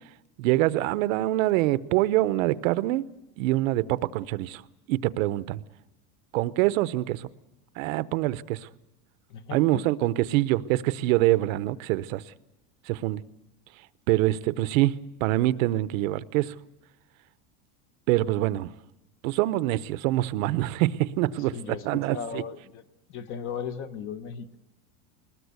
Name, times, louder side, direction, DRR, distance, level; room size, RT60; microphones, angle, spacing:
voice 1, 0.4-3.0 3.4-4.6 4.9-5.6 6.3-7.3 7.8-8.7 9.5-12.2 12.9-13.2 14.1-16.6 18.1-18.7 19.2-22.4, right 16 dB, 65° right, 0.8 m, -25 dB
voice 2, 9.3-10.1 21.4-22.8 23.1-24.6, left 7 dB, 30° left, 0.9 m, -37 dB
21.5 x 20.0 x 8.2 m
cardioid pair, 180°, 43 cm